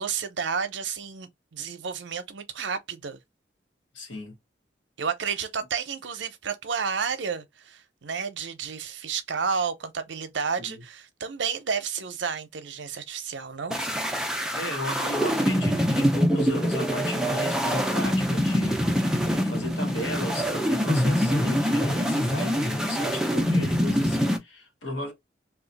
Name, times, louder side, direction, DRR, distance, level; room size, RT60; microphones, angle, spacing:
voice 1, 0.0-3.2 5.0-13.8, right 6 dB, 80° right, 0.6 m, -31 dB
voice 2, 3.9-4.3 10.6-10.8 14.5-25.1, left 1 dB, 85° left, 1.2 m, -34 dB
sound 1, 13.7-24.4, equal, 5° right, 0.4 m, -25 dB
2.9 x 2.3 x 3.9 m
head